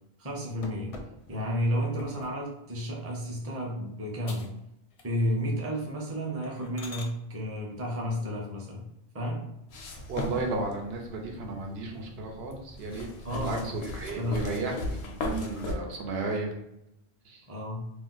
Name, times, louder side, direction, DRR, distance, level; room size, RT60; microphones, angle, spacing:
voice 1, 0.2-0.9 1.3-4.5 5.0-8.8 9.1-9.4 13.2-13.7 14.2-14.5 17.5-17.8, equal, 20° right, -2 dB, 0.5 m, -31 dB
sound 1, 0.6-2.4 3.0-3.3 3.7-3.8 4.2-4.6 4.9-5.4 5.8-5.9 6.4-7.1 9.1-9.8 10.3-10.4 10.8-10.9 11.2-12.0 12.3-12.9 13.3-14.0 14.5-16.2, left 3 dB, 50° left, 0.4 m, -48 dB
sound 2, 9.7-15.7, left 2 dB, 90° left, 0.9 m, -36 dB
voice 2, 10.1-13.1 13.3-16.5 17.2-17.5, right 3 dB, 80° right, 2 dB, 0.9 m, -34 dB
2.5 x 2.1 x 3.8 m, 0.81 s
omnidirectional pair, 1.0 m